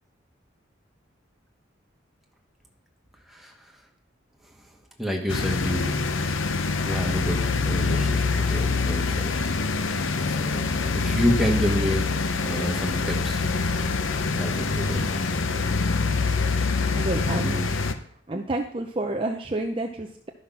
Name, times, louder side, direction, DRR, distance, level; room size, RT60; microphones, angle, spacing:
voice 1, 3.3-3.7 4.6-4.7 5.0-6.1 6.8-9.4 9.7-10.7 10.9-12.1 12.4-13.4 14.3-15.0, equal, ahead, 0 dB, 1.5 m, -29 dB
sound 1, 5.3-17.9, left 4 dB, 80° left, 0.8 m, -25 dB
voice 2, 17.0-17.7 18.3-20.3, right 2 dB, 25° right, 2 dB, 0.6 m, -29 dB
12.0 x 5.7 x 5.8 m, 0.65 s
head